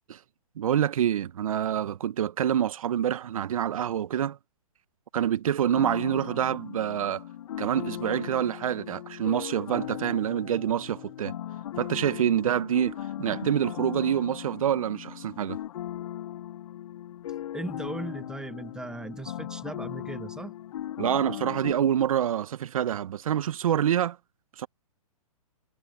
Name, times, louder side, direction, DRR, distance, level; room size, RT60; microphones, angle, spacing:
voice 1, 0.6-4.4 5.1-7.2 7.6-11.4 11.8-15.6 21.0-24.2 24.6-24.7, right 10 dB, 65° right, 1.2 m, -26 dB
sound 1, 5.7-21.7, left 12 dB, 60° left, 0.8 m, -38 dB
voice 2, 17.5-20.5, right 2 dB, 5° right, 1.3 m, -37 dB
hypercardioid pair, 140°, 19 cm